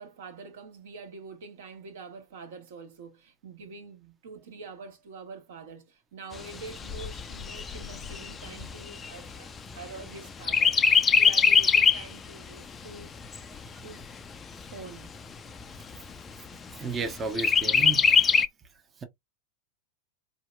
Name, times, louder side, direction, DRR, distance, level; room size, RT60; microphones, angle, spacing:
voice 1, 0.0-10.8 11.1-13.4 13.8-14.0 14.7-15.1, right 4 dB, 55° right, 1.3 m, -45 dB
Chirp tweet, 6.3-10.1 10.5-12.1 12.6-12.7 13.0-14.0 14.6-14.7 15.0-15.1 15.6-16.1 17.4-18.4, left 6 dB, 20° left, 0.4 m, -23 dB
voice 2, 16.8-18.0, right 4 dB, 20° right, 0.8 m, -32 dB
4.1 x 2.8 x 2.2 m
figure-of-eight pair, 90°, 0 cm